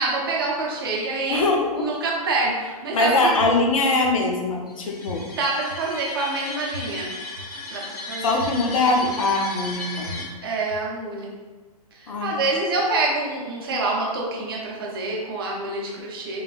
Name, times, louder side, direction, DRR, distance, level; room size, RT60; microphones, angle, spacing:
voice 1, 0.0-1.4 1.7-3.4 5.4-7.1 7.7-8.3 10.4-11.3 12.0-16.4, right 3 dB, 40° right, -3 dB, 0.6 m, -26 dB
voice 2, 1.3-1.9 2.9-5.3 8.2-10.3 12.1-12.4, left 2 dB, 60° left, 1 dB, 0.6 m, -22 dB
sound 1, 3.4-3.5 4.0-4.1 5.1-5.2 5.7-5.8 6.7-6.8 7.4-7.5 8.4-8.5 9.0-9.1 10.0-10.1 10.7-10.8, right 3 dB, 75° right, 0.6 m, -36 dB
sound 2, 4.7-10.2, left 2 dB, 85° left, 0.9 m, -36 dB
3.1 x 2.5 x 2.3 m, 1.3 s
hypercardioid pair, 175°, 19 cm